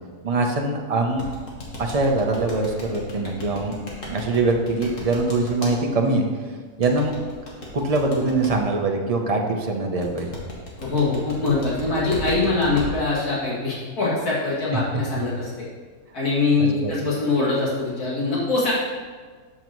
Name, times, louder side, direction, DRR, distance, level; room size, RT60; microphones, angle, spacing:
voice 1, 0.2-1.3 1.8-3.7 4.0-6.3 6.8-7.1 7.7-10.3 16.6-16.9, right 2 dB, 35° right, 2 dB, 0.7 m, -23 dB
sound 1, 1.2-5.7 6.8-8.5 10.0-12.9, left 2 dB, 55° left, 2.0 m, -35 dB
voice 2, 10.8-15.5 16.1-18.7, left 3 dB, 80° left, -8 dB, 3.0 m, -23 dB
12.5 x 5.4 x 3.1 m, 1.5 s
omnidirectional pair, 1.6 m